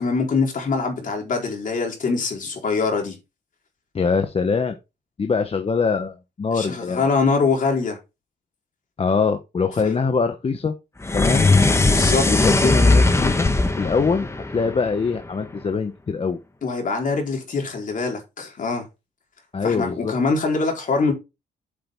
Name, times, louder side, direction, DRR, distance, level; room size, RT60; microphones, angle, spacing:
voice 1, 0.0-3.2 6.5-8.0 9.8-9.9 11.9-12.5 16.6-18.8 19.6-21.1, left 4 dB, 50° left, 4.1 m, -23 dB
voice 2, 3.9-4.8 5.2-7.0 9.0-10.7 11.1-11.5 12.2-13.5 13.8-14.3 14.5-16.4 19.5-20.1, left 5 dB, 35° left, 1.1 m, -23 dB
sound 1, 11.0-15.4, left 2 dB, 15° left, 1.4 m, -19 dB
8.3 x 7.6 x 3.7 m
cardioid pair, 115°, 17 cm